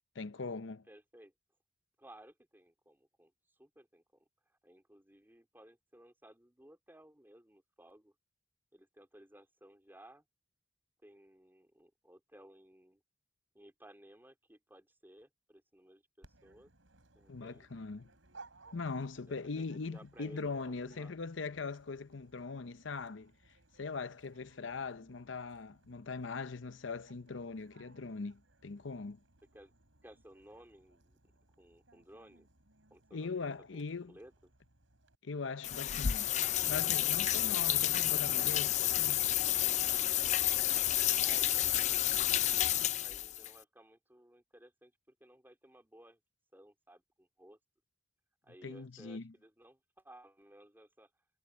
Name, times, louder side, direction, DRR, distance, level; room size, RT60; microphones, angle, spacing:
voice 1, 0.1-0.9 17.3-18.1 18.7-23.3 23.8-29.2 33.1-34.2 35.2-36.4 36.7-39.2 48.6-49.3, left 4 dB, 75° left, 0.7 m, -41 dB
voice 2, 0.9-1.3 2.0-4.3 4.6-8.1 8.7-10.2 11.0-13.0 13.5-16.7 17.2-17.7 19.3-21.2 29.5-29.7 30.0-31.2 31.6-32.5 32.9-33.8 34.1-34.3 41.2-42.7 43.0-46.2 46.5-47.6 48.4-51.1, right 1 dB, 10° right, 3.7 m, -58 dB
Dog, 16.2-35.1, right 3 dB, 85° right, 4.8 m, -63 dB
sound 1, 35.6-43.5, left 12 dB, 35° left, 0.4 m, -30 dB
head